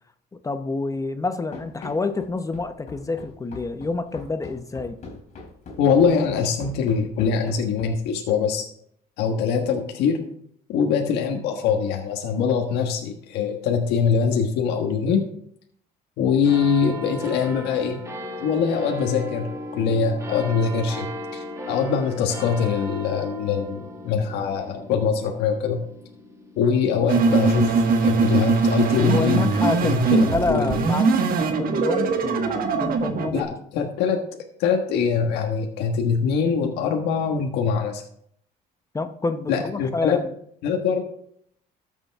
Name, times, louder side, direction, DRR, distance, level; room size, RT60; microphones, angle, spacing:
voice 1, 0.4-5.0 29.1-33.5 38.9-40.3, left 3 dB, 20° left, 9 dB, 0.7 m, -28 dB
Run, 1.5-8.1, left 3 dB, 45° left, 3.7 m, -41 dB
voice 2, 5.8-8.6 9.2-10.2 10.7-15.2 16.2-18.0 18.4-21.1 21.3-25.8 26.6-27.7 28.0-29.4 29.8-30.8 33.3-34.2 34.6-38.0 39.5-40.2 40.6-41.0, left 6 dB, 90° left, 2 dB, 1.5 m, -23 dB
sound 1, 16.4-29.3 30.0-30.1, equal, 15° right, 1.5 m, -37 dB
sound 2, 27.1-33.4, right 4 dB, 60° right, 1.4 m, -21 dB
13.5 x 7.2 x 3.5 m, 0.67 s
cardioid pair, 110°, 17 cm